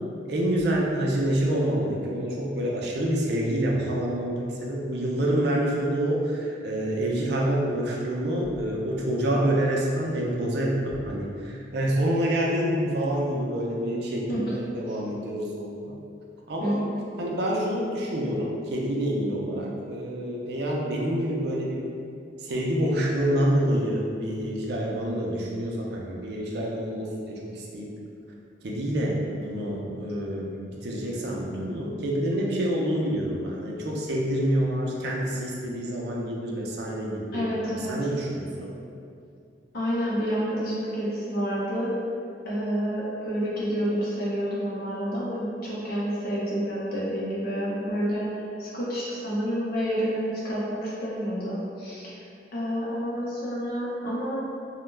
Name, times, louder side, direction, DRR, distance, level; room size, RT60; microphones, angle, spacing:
voice 1, 0.3-15.7 16.5-16.8 17.2-21.9 22.4-27.9 28.6-38.7, right 1 dB, 65° right, -2 dB, 0.4 m, -27 dB
voice 2, 16.6-17.0 37.3-37.9 39.7-41.9 42.4-48.3 48.6-52.1 52.5-54.4, equal, 55° left, -7 dB, 0.7 m, -29 dB
2.2 x 2.0 x 3.2 m, 2.5 s
head